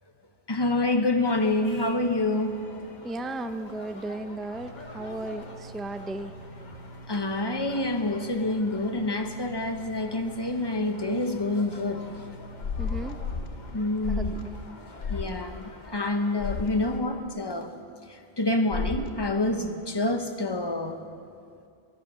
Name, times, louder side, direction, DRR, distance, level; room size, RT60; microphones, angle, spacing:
voice 1, 0.5-2.6 7.1-12.1 13.7-14.4 15.1-17.7 18.1-21.0, left 2 dB, 25° left, 6 dB, 0.9 m, -27 dB
sound 1, 1.2-17.0, left 2 dB, 45° left, 1.2 m, -47 dB
voice 2, 3.0-6.3 12.8-13.2 14.1-14.6, right 2 dB, ahead, 9 dB, 0.3 m, -35 dB
sound 2, 4.5-14.7, right 2 dB, 85° right, 3.0 m, -47 dB
sound 3, 12.6-13.5 14.0-14.4 15.0-15.3 16.4-16.7 18.7-19.1, left 5 dB, 70° left, 1.2 m, -31 dB
23.5 x 10.5 x 5.6 m, 2.4 s
omnidirectional pair, 1.1 m